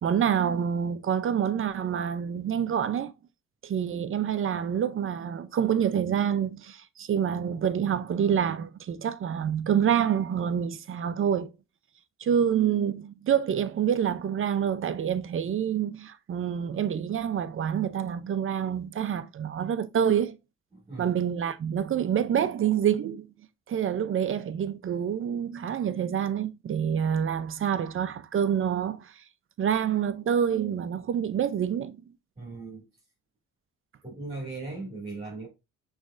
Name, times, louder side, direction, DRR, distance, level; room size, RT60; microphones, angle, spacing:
voice 1, 0.0-3.1 3.6-11.5 12.2-20.4 21.0-23.3 23.7-29.2 29.6-32.0, right 8 dB, 45° right, 0.6 m, -27 dB
voice 2, 20.7-21.1 32.4-32.9 34.0-35.5, right 3 dB, 20° right, 2.3 m, -38 dB
6.1 x 3.2 x 2.5 m
cardioid pair, 90°, 30 cm